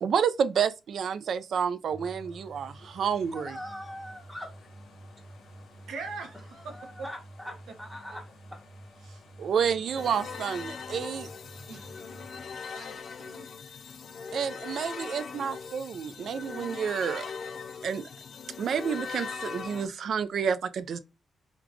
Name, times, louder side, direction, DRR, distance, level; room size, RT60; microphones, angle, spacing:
voice 1, 0.0-3.6 9.4-11.3 14.3-17.3 17.8-18.1 18.6-21.0, right 7 dB, 65° right, 0.4 m, -29 dB
sound 1, 1.9-15.6 16.1-16.2, equal, 70° left, 1.0 m, -50 dB
voice 2, 3.3-4.5 6.6-8.6, equal, ahead, 1.1 m, -42 dB
voice 3, 5.9-6.9 8.1-8.2 9.0-9.2 11.7-12.3 12.7-13.5, right 4 dB, 90° right, 1.0 m, -43 dB
sound 2, 9.9-19.9, left 5 dB, 55° left, 0.4 m, -40 dB
3.5 x 2.4 x 3.1 m
cardioid pair, 120°, 0 cm